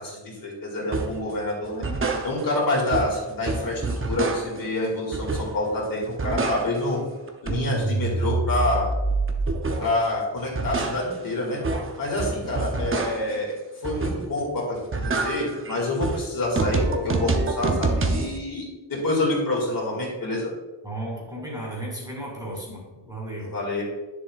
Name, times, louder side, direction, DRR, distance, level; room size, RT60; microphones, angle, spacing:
voice 1, 0.0-1.9 2.2-7.0 7.4-8.9 9.8-11.6 12.0-13.5 13.8-20.5 23.4-23.8, left 2 dB, 50° left, -3 dB, 2.1 m, -27 dB
sound 1, 0.9-1.2 1.6-2.6 2.9-4.7 5.1-5.7 6.0-7.0 7.3-10.0 10.4-13.4 13.8-14.4 14.7-18.4, right 3 dB, 30° right, 0.6 m, -27 dB
voice 2, 20.8-23.5, right 1 dB, 10° right, -4 dB, 2.3 m, -34 dB
10.0 x 7.0 x 2.4 m, 1.2 s
wide cardioid pair, 170°, 44 cm